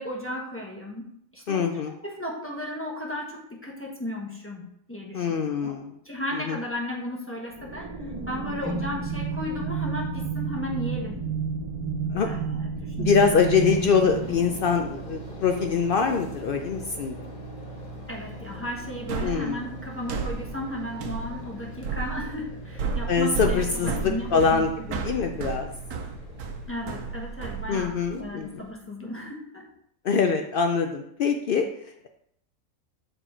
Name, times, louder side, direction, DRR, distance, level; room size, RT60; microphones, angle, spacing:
voice 1, 0.0-1.7 2.0-5.3 5.6-5.8 6.0-7.9 8.3-11.2 12.2-13.3 18.1-25.1 26.7-29.7, left 1 dB, 10° left, -2 dB, 1.0 m, -35 dB
voice 2, 1.5-1.9 5.1-5.9 6.3-6.6 8.6-8.8 12.1-12.4 13.0-17.2 19.2-19.6 23.1-24.7 25.0-25.7 27.7-28.6 30.0-32.1, left 5 dB, 85° left, 5 dB, 0.4 m, -24 dB
sound 1, 7.5-15.8, right 5 dB, 35° right, 0.6 m, -31 dB
sound 2, 13.6-28.7, right 1 dB, 35° left, 1.3 m, -42 dB
sound 3, 19.1-28.2, right 5 dB, 85° right, 1.3 m, -33 dB
6.6 x 4.6 x 4.4 m, 0.72 s
omnidirectional pair, 1.6 m